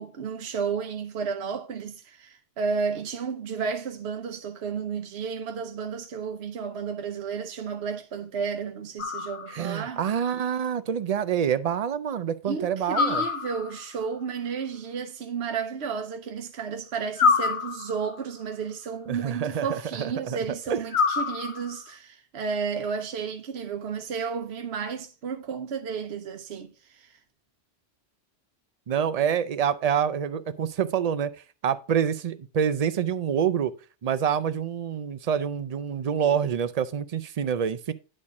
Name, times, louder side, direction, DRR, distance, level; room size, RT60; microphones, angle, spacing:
voice 1, 0.0-10.0 12.4-27.2, right 6 dB, 75° right, 1.1 m, -32 dB
sound 1, 9.0-9.8 12.9-13.9 17.2-18.2 20.9-21.9, left 5 dB, 55° left, 0.7 m, -26 dB
voice 2, 9.5-13.2 19.1-20.4 20.7-20.8 28.9-31.3 31.6-33.7 34.0-37.9, right 8 dB, 50° right, 0.5 m, -27 dB
10.0 x 4.3 x 4.8 m
omnidirectional pair, 1.1 m